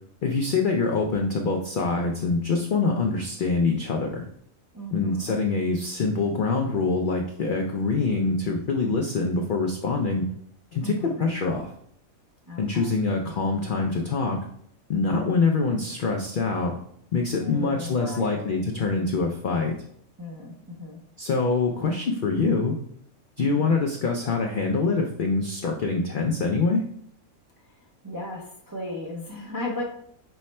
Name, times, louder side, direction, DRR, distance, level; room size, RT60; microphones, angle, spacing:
voice 1, 0.2-4.2 4.9-10.3 10.7-11.7 12.6-14.4 14.9-16.7 17.1-19.7 21.2-22.7 23.4-26.8, left 4 dB, 80° left, 2 dB, 0.4 m, -25 dB
voice 2, 4.7-5.4 10.8-11.2 12.5-12.9 17.4-18.6 20.2-21.0 23.4-23.8 27.6-27.8 28.0-29.8, left 2 dB, 25° right, -3 dB, 0.4 m, -36 dB
5.6 x 2.1 x 4.1 m, 0.67 s
omnidirectional pair, 1.4 m